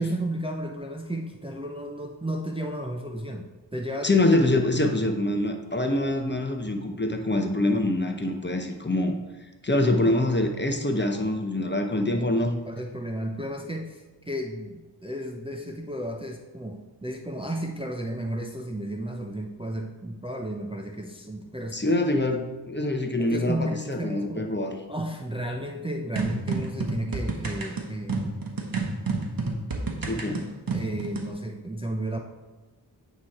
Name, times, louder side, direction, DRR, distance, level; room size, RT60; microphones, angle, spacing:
voice 1, 0.0-4.1 4.8-4.9 12.2-22.0 23.2-24.5 24.9-28.3 30.7-32.2, right 1 dB, 10° right, 1 dB, 0.5 m, -33 dB
voice 2, 4.0-9.2 9.6-12.5 21.7-22.4 22.7-24.7 30.0-30.5, left 1 dB, 25° left, 4 dB, 0.8 m, -25 dB
sound 1, 26.2-31.3, right 3 dB, 50° right, 1.0 m, -30 dB
8.7 x 3.1 x 4.2 m, 1.2 s
cardioid pair, 45°, 45 cm